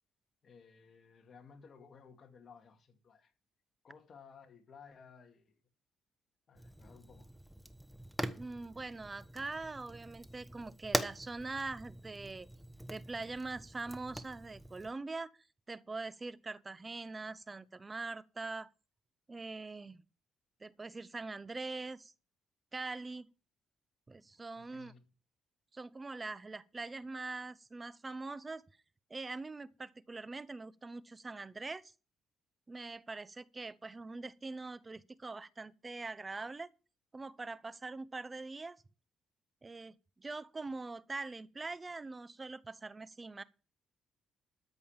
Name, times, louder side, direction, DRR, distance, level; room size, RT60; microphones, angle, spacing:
voice 1, 0.4-3.3 3.8-5.6 6.5-7.3 24.6-25.1, left 6 dB, 50° left, 2.3 m, -57 dB
Fire, 6.5-14.9, right 1 dB, 5° right, 1.1 m, -43 dB
voice 2, 8.4-12.5 12.9-15.3 15.7-18.7 19.3-20.0 20.6-22.1 22.7-23.3 24.1-24.9 25.7-28.6 29.1-31.9 32.7-36.7 37.1-38.8 39.6-43.4, right 3 dB, 25° right, 0.7 m, -43 dB
13.0 x 5.4 x 7.3 m
cardioid pair, 90°, 0 cm